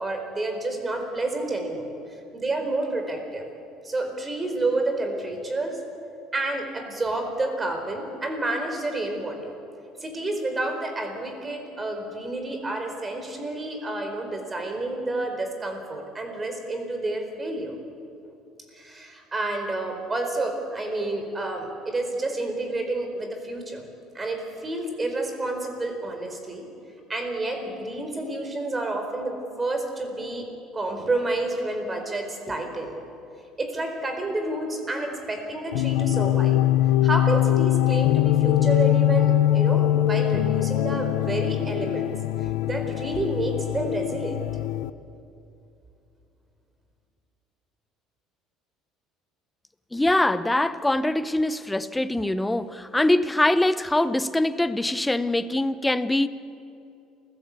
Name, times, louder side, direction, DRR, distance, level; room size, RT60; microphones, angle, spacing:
voice 1, 0.0-1.9 2.3-3.5 3.8-5.8 6.3-9.5 10.0-17.8 18.7-23.8 24.1-26.7 27.1-30.5 30.7-33.0 33.6-36.6 37.0-42.1 42.4-44.4, right 2 dB, 20° right, 5 dB, 4.5 m, -29 dB
sound 1, 35.7-44.9, left 13 dB, 90° left, 0.6 m, -22 dB
voice 2, 49.9-56.3, left 1 dB, 10° left, 13 dB, 0.9 m, -23 dB
27.5 x 16.0 x 8.4 m, 2.6 s
cardioid pair, 115°, 0 cm